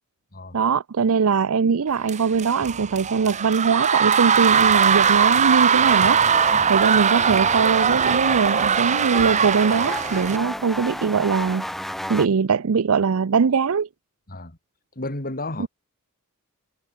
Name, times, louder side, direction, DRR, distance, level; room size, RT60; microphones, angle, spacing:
voice 1, 0.5-6.2 6.7-11.7 12.1-13.9 15.6-15.7, right 5 dB, 70° right, 0.5 m, -21 dB
sound 1, 2.1-10.4, right 7 dB, 30° right, 0.9 m, -20 dB
sound 2, 5.7-12.3, equal, ahead, 6.5 m, -33 dB
voice 2, 14.9-15.7, left 2 dB, 40° left, 3.4 m, -32 dB
head